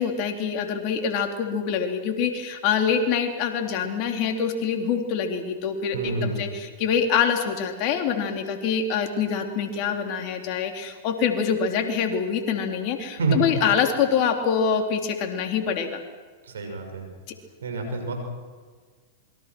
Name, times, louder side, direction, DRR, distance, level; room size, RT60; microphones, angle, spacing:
voice 1, 0.0-16.0, left 7 dB, 50° left, 4 dB, 3.7 m, -25 dB
voice 2, 5.9-6.4 13.2-13.4 16.4-17.1 17.6-18.1, right 4 dB, 85° right, 4 dB, 6.9 m, -27 dB
27.0 x 23.0 x 6.3 m, 1.6 s
hypercardioid pair, 110°, 0 cm